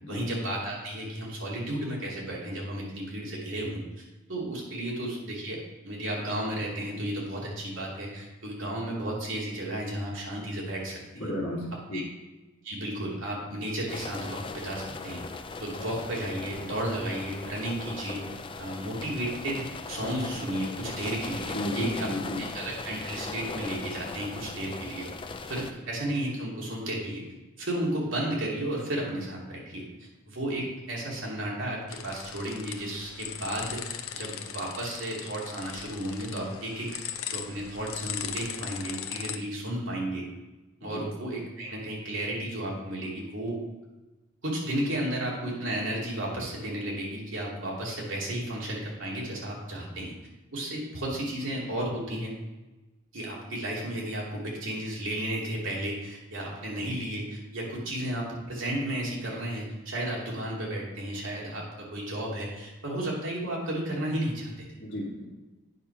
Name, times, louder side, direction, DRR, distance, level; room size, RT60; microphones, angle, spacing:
voice 1, 0.1-3.8 4.3-11.3 11.9-12.0 12.6-15.2 15.6-18.2 18.6-22.1 22.5-25.1 25.5-27.2 27.6-29.9 30.3-36.9 37.3-40.3 40.8-43.6 44.4-50.1 50.5-52.4 53.1-64.7, right 1 dB, 60° right, -4 dB, 2.5 m, -33 dB
voice 2, 11.2-12.0 21.5-22.4 40.8-41.0 64.8-65.2, left 1 dB, 50° left, -10 dB, 2.1 m, -33 dB
sound 1, 13.9-25.7, left 4 dB, 25° left, 0.4 m, -39 dB
sound 2, 31.9-39.4, left 9 dB, 70° left, 0.6 m, -39 dB
9.0 x 4.9 x 5.8 m, 1.1 s
head